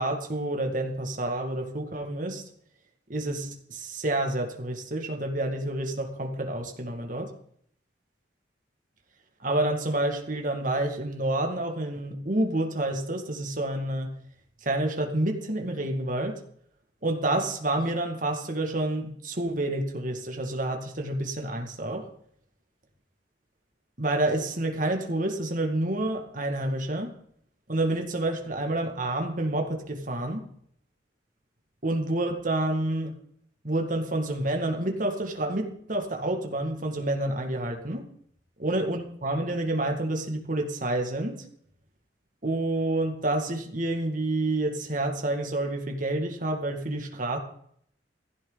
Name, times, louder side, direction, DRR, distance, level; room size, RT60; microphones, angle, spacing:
voice 1, 0.0-2.4 3.1-7.3 9.4-14.1 14.6-16.4 17.0-22.1 24.0-27.1 27.7-30.5 31.8-33.1 33.6-38.0 38.6-41.5 42.4-47.4, right 1 dB, 45° right, 4 dB, 2.1 m, -28 dB
16.0 x 15.0 x 4.0 m, 0.66 s
head